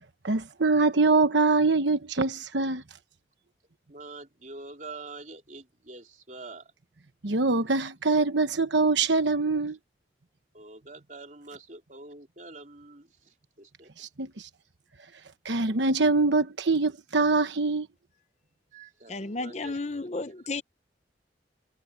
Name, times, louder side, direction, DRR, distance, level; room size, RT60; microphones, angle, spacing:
voice 1, 0.2-2.8 7.2-9.8 14.0-14.5 15.4-17.9, right 3 dB, 80° right, 1.1 m, -24 dB
voice 2, 3.9-6.7 10.5-13.9 18.7-19.8, right 3 dB, 45° right, 4.2 m, -45 dB
voice 3, 19.1-20.6, left 3 dB, 35° left, 0.8 m, -33 dB
head